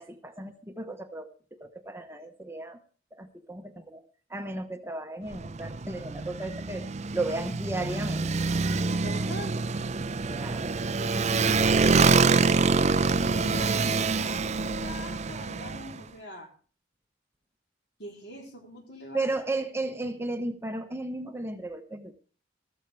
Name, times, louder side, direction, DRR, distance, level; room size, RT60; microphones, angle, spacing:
voice 1, 0.0-2.8 3.1-4.0 4.3-6.9 7.1-8.5 8.8-9.3 9.7-9.8 10.2-10.7 19.1-22.1, right 2 dB, 15° right, 6 dB, 0.9 m, -35 dB
Motorcycle, 5.3-16.0, right 4 dB, 35° right, 0.5 m, -26 dB
voice 2, 8.9-9.6 11.0-12.4 13.1-16.5 18.0-19.3, left 1 dB, 60° left, 1 dB, 3.6 m, -42 dB
14.5 x 13.5 x 3.3 m, 0.40 s
head